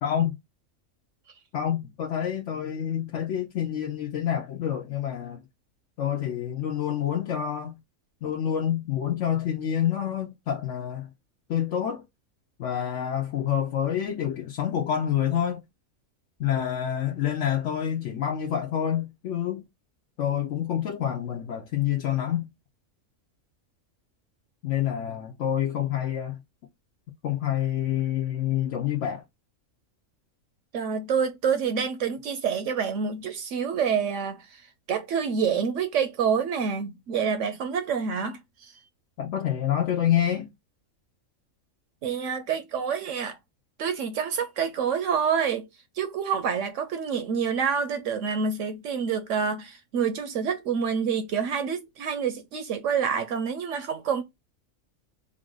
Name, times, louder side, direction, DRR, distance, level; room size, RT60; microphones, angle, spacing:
voice 1, 0.0-0.3 1.5-5.4 6.0-7.8 8.2-11.1 11.5-12.0 12.6-15.6 16.4-19.6 20.2-22.4 24.6-26.4 27.2-29.2 39.2-40.5, left 10 dB, 65° left, 0.9 m, -27 dB
voice 2, 30.7-34.5 34.9-38.7 42.0-43.4 43.8-45.7 46.0-54.2, right 6 dB, 70° right, 0.9 m, -27 dB
3.7 x 2.5 x 3.7 m
omnidirectional pair, 1.4 m